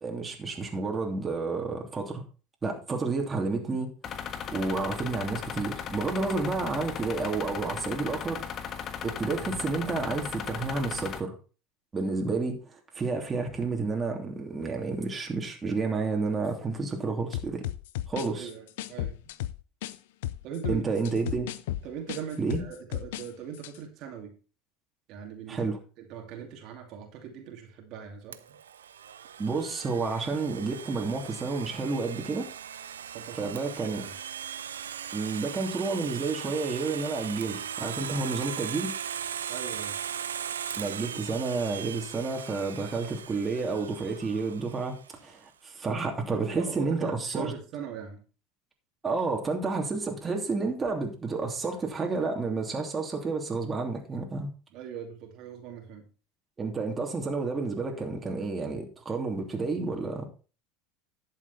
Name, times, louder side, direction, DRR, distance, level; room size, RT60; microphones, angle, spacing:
voice 1, 0.0-2.2 2.6-3.9 4.2-4.3 4.5-8.4 9.0-11.4 11.9-17.6 18.1-18.5 20.7-21.5 22.4-22.6 25.5-25.8 29.4-32.5 33.4-34.0 35.1-38.9 40.7-47.5 49.0-54.5 56.6-60.3, right 4 dB, 25° right, 3.0 m, -30 dB
sound 1, 4.0-11.2, left 8 dB, 40° left, 1.4 m, -37 dB
sound 2, 17.3-20.0 20.2-23.3 23.5-23.8, left 13 dB, 75° left, 0.7 m, -34 dB
voice 2, 18.3-19.2 20.4-20.9 21.8-24.3 25.1-28.6 33.1-33.6 33.8-34.2 39.5-40.0 46.5-48.2 54.7-56.1, right 8 dB, 55° right, 2.6 m, -40 dB
Domestic sounds home sounds, 28.3-45.1, right 9 dB, 90° right, 0.6 m, -39 dB
11.5 x 7.3 x 4.2 m
hypercardioid pair, 85°, 0 cm